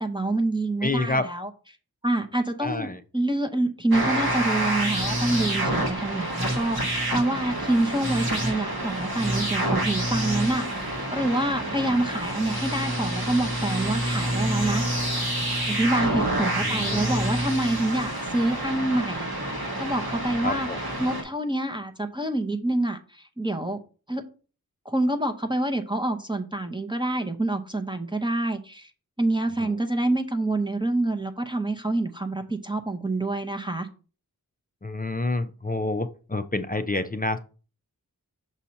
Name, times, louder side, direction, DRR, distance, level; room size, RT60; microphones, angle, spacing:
voice 1, 0.0-1.5 2.0-15.1 15.7-19.3 19.8-20.7 21.0-23.8 24.1-24.2 24.8-28.9 29.2-33.9, right 2 dB, 15° right, 0.7 m, -27 dB
voice 2, 0.8-1.3 2.6-3.0 11.8-12.0 16.6-17.3 20.4-20.8 29.6-29.7 34.8-37.4, left 2 dB, 25° left, 0.5 m, -28 dB
sound 1, 3.9-21.2, right 1 dB, 80° right, 1.5 m, -28 dB
6.2 x 2.8 x 5.6 m
wide cardioid pair, 45°, 36 cm